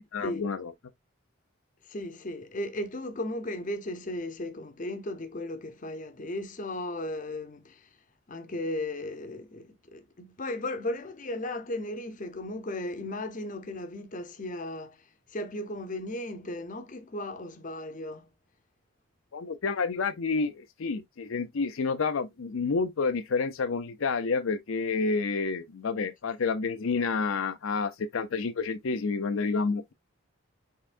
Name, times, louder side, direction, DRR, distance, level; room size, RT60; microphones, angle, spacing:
voice 1, 0.1-0.7 19.3-29.9, left 4 dB, 75° left, 0.6 m, -29 dB
voice 2, 1.9-7.9 8.3-15.0 15.3-18.3, left 1 dB, 40° left, 0.7 m, -36 dB
5.5 x 3.7 x 2.5 m
head